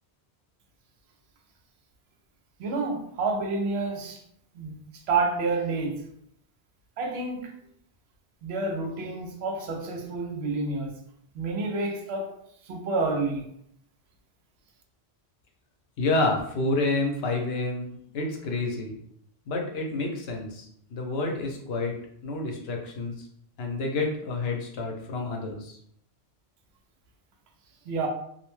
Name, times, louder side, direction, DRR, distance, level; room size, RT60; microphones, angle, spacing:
voice 1, 2.6-4.2 4.5-6.1 7.0-7.5 8.4-10.9 11.3-12.4 12.7-13.4 27.9-28.1, right 3 dB, 80° right, 0.8 m, -29 dB
voice 2, 16.0-18.9 19.5-22.0 22.2-23.2 23.6-25.8, left 2 dB, 75° left, 0.8 m, -29 dB
2.6 x 2.1 x 3.0 m
omnidirectional pair, 1.1 m